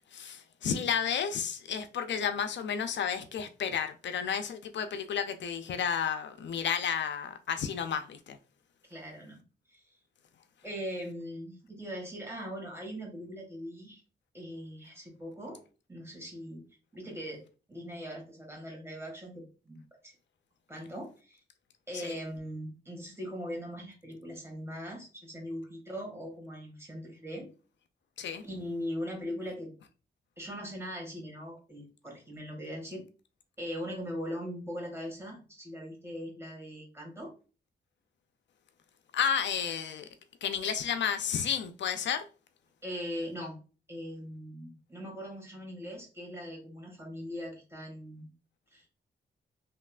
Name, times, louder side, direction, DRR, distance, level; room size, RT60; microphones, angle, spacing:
voice 1, 0.1-8.4 22.0-22.2 28.2-28.4 39.1-40.1 40.4-42.3, left 7 dB, 70° left, 0.4 m, -32 dB
voice 2, 8.9-9.4 9.7-9.8 10.6-14.0 14.3-15.6 15.9-16.6 16.9-20.1 20.7-21.4 21.9-27.5 28.4-29.7 30.4-33.0 33.6-37.3 42.8-43.6 43.9-48.3 48.7-48.9, equal, 15° right, 1.7 m, -40 dB
3.1 x 2.9 x 2.4 m
cardioid pair, 65°, 19 cm